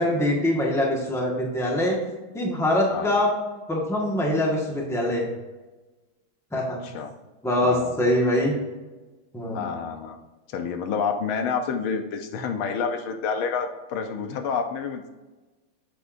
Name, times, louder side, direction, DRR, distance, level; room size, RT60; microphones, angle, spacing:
voice 1, 0.0-2.0 2.3-3.3 3.7-5.2 6.5-6.8 7.4-8.5 9.3-9.7, left 1 dB, ahead, -1 dB, 1.1 m, -23 dB
voice 2, 7.6-8.1 9.5-10.2 10.5-15.1, left 6 dB, 85° left, 6 dB, 1.6 m, -29 dB
8.0 x 8.0 x 2.6 m, 1.2 s
omnidirectional pair, 2.2 m